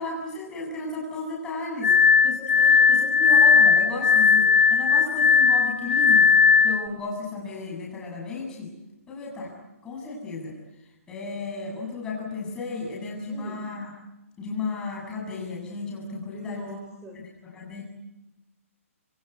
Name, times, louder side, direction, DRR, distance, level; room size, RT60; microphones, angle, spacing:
voice 1, 0.0-1.9 2.2-6.3 6.6-8.7 9.1-9.5 9.8-10.6 11.1-13.9 14.4-16.8 17.1-17.8, left 3 dB, 10° left, -1 dB, 7.5 m, -34 dB
Glass, 1.8-6.9, left 6 dB, 65° left, 2.4 m, -18 dB
voice 2, 2.6-3.2 13.3-13.7 16.3-17.3, right 1 dB, 10° right, 1 dB, 3.6 m, -42 dB
28.0 x 25.0 x 8.2 m, 0.99 s
hypercardioid pair, 170°, 8 cm